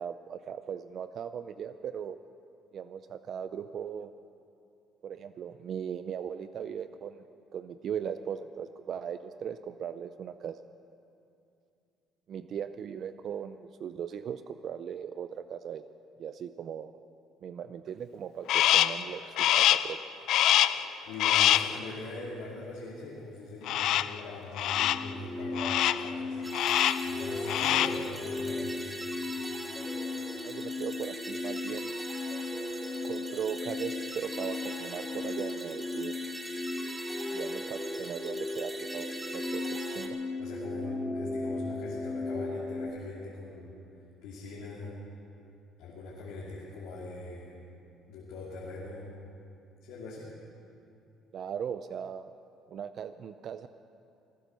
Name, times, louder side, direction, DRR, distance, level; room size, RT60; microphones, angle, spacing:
voice 1, 0.0-2.2 2.7-4.1 5.0-7.3 7.5-10.6 12.3-15.8 16.2-16.9 17.4-20.0 30.4-31.9 33.0-36.2 37.3-40.2 51.3-52.2 52.7-53.7, right 8 dB, 55° right, 11 dB, 0.4 m, -38 dB
Crow, 18.5-19.0 19.4-19.9 20.3-20.9 21.2-21.8 23.7-24.2 24.6-25.1 25.6-26.1 26.5-27.1 27.4-28.0, left 12 dB, 70° left, 0.4 m, -25 dB
voice 2, 21.1-26.7 27.1-28.9 40.4-44.9 45.8-47.6 48.1-49.1 49.8-50.3, left 2 dB, 85° left, -6 dB, 2.9 m, -42 dB
sound 1, 24.7-42.9, left 2 dB, 30° left, 2.5 m, -36 dB
sound 2, 26.4-40.1, right 1 dB, 15° right, 1.8 m, -42 dB
19.0 x 10.5 x 6.8 m, 2.6 s
cardioid pair, 95°, 0 cm